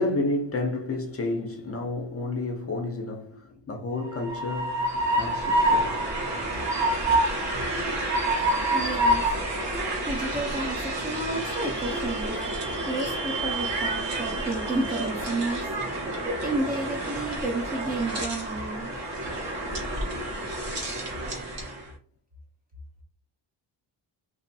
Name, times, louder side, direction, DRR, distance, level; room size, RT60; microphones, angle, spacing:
voice 1, 0.0-6.0 7.5-8.1 11.9-12.0, left 2 dB, 30° left, 0.5 m, -31 dB
Train, 4.0-21.8, right 1 dB, 70° right, 1.2 m, -28 dB
voice 2, 8.7-15.7 16.3-18.9, right 2 dB, 20° right, 0.4 m, -32 dB
2.9 x 2.6 x 2.6 m
wide cardioid pair, 155°, 45 cm